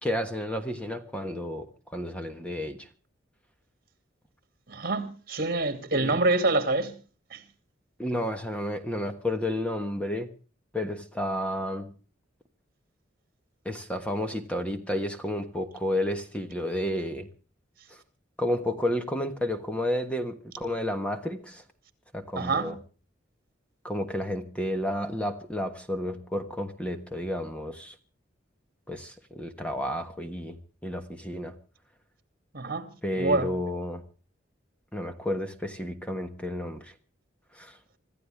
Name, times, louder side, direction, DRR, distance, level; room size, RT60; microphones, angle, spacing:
voice 1, 0.0-2.9 5.9-6.2 8.0-10.3 10.7-11.9 13.6-17.3 17.9-18.0 18.4-21.6 22.1-22.8 23.8-27.9 28.9-30.6 30.8-31.5 33.0-34.0 34.9-36.9 37.5-37.8, left 1 dB, 5° left, 1.3 m, -31 dB
voice 2, 4.7-6.9 7.3-7.4 22.4-22.8 32.5-32.9 33.2-33.5, right 2 dB, 55° right, 2.6 m, -26 dB
25.5 x 14.0 x 3.4 m
head